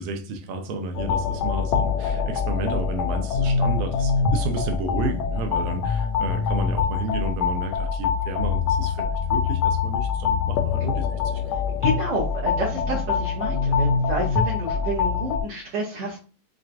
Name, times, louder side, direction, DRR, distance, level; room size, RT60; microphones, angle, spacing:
voice 1, 0.0-11.8 12.7-13.0, right 3 dB, 90° right, 2.1 m, -31 dB
sound 1, 0.9-15.4, left 6 dB, 80° left, 1.6 m, -24 dB
voice 2, 11.7-16.2, right 1 dB, 70° right, 1.3 m, -29 dB
6.0 x 2.3 x 2.5 m
omnidirectional pair, 3.4 m